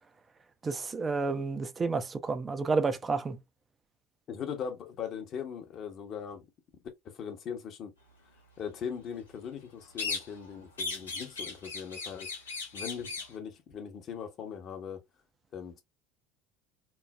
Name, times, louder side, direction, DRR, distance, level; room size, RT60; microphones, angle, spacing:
voice 1, 0.6-3.4, right 4 dB, 25° right, 0.4 m, -30 dB
voice 2, 4.3-6.5 7.0-7.9 8.6-12.3 12.7-15.0 15.5-15.8, left 7 dB, 45° left, 0.8 m, -40 dB
sound 1, 10.0-10.5 10.8-13.3, left 4 dB, 85° left, 0.6 m, -37 dB
3.1 x 2.0 x 2.3 m
figure-of-eight pair, 65°, 0 cm